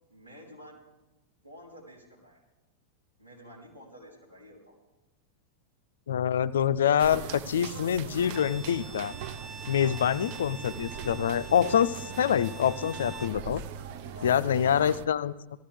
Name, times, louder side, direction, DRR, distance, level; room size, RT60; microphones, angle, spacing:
voice 1, 0.1-0.9 1.4-2.4 3.2-4.8 9.7-10.0 14.0-15.0, equal, 90° right, -6 dB, 3.8 m, -50 dB
voice 2, 6.1-9.1 9.7-13.6 14.2-15.3, left 9 dB, 65° left, 15 dB, 0.4 m, -26 dB
sound 1, 7.0-15.1, right 8 dB, 45° right, 0.6 m, -41 dB
Bowed string instrument, 8.2-13.4, right 2 dB, 20° right, 1.0 m, -45 dB
18.0 x 14.0 x 3.5 m, 1.0 s
figure-of-eight pair, 90°, 0 cm